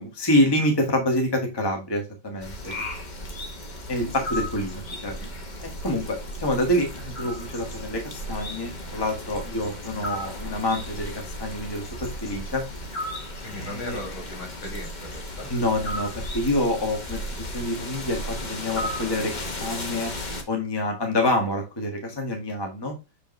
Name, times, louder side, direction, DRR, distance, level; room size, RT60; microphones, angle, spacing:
voice 1, 0.0-2.7 3.9-5.3 5.6-12.6 13.6-14.0 15.5-20.1 20.5-22.9, left 1 dB, 15° left, 3 dB, 1.4 m, -27 dB
sound 1, 2.4-20.4, left 1 dB, 30° left, 0.9 m, -35 dB
voice 2, 13.4-15.5, left 1 dB, 80° left, 0 dB, 4.3 m, -38 dB
6.8 x 5.1 x 3.2 m, 0.27 s
omnidirectional pair, 2.2 m